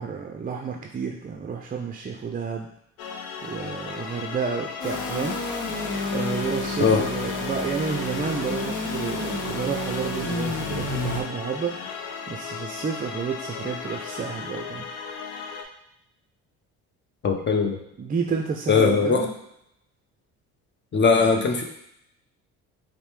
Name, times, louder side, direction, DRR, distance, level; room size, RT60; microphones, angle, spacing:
voice 1, 0.0-2.7 3.4-5.4 6.1-11.9 12.3-14.8 18.0-19.3, right 5 dB, 25° right, 2 dB, 0.4 m, -30 dB
sound 1, 3.0-15.6, left 6 dB, 85° left, 0.6 m, -36 dB
sound 2, 4.8-11.2, left 2 dB, 60° left, 0.9 m, -30 dB
voice 2, 17.2-17.8 18.7-19.3 20.9-21.6, left 5 dB, 30° left, 3 dB, 0.7 m, -20 dB
5.2 x 2.1 x 3.3 m, 0.76 s
supercardioid pair, 65°, 36 cm